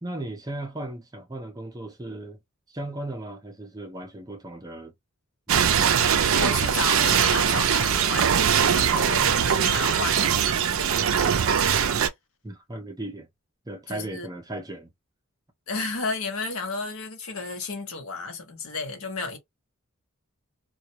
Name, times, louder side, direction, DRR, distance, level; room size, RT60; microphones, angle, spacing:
voice 1, 0.0-2.4 2.7-4.9 7.6-7.8 12.4-13.3 13.7-14.9, right 1 dB, 15° right, 0.5 m, -36 dB
sound 1, 5.5-12.1, right 8 dB, 70° right, 0.4 m, -21 dB
voice 2, 6.3-11.0 13.9-14.3 15.7-19.4, left 3 dB, 75° left, 0.9 m, -33 dB
2.2 x 2.1 x 2.7 m
head